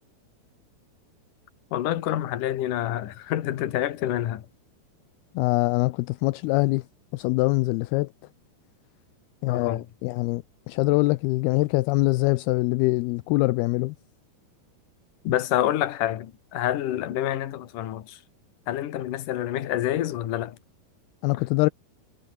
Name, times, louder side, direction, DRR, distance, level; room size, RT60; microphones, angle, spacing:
voice 1, 1.7-4.5 9.5-9.8 15.2-18.2 18.7-20.6 21.3-21.4, left 12 dB, 60° left, 2.8 m, -27 dB
voice 2, 5.4-6.8 7.1-8.1 9.4-14.0 21.2-21.7, left 21 dB, 80° left, 2.4 m, -23 dB
omnidirectional pair, 4.8 m